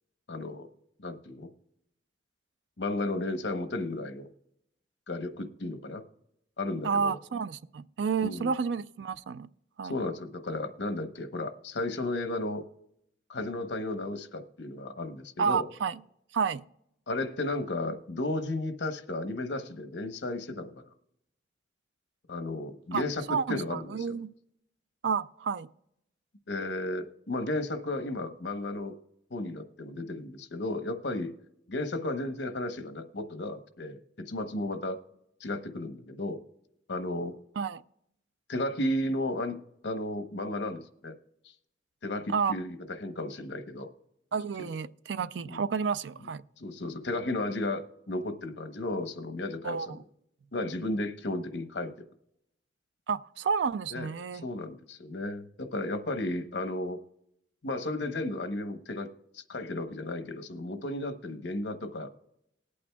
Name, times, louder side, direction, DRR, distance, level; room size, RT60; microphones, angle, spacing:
voice 1, 0.3-0.7 1.0-1.5 2.8-4.3 5.1-6.0 6.6-7.1 8.2-8.5 9.8-12.7 13.3-15.7 17.1-20.8 22.3-24.2 26.5-28.9 29.3-31.3 31.7-34.0 34.3-35.0 35.4-36.4 36.9-37.4 38.5-41.1 42.0-43.9 44.6-44.8 45.5-45.6 46.6-50.0 50.5-51.9 53.9-54.1 54.4-57.0 57.6-62.1, left 2 dB, 75° left, 0.9 m, -34 dB
voice 2, 6.8-9.5 9.8-9.9 15.4-16.0 16.3-16.6 22.9-24.3 25.0-25.7 37.6-37.8 42.3-42.6 44.3-46.4 49.6-49.9 53.1-54.4, right 6 dB, 75° right, 0.4 m, -30 dB
20.5 x 8.6 x 2.3 m
head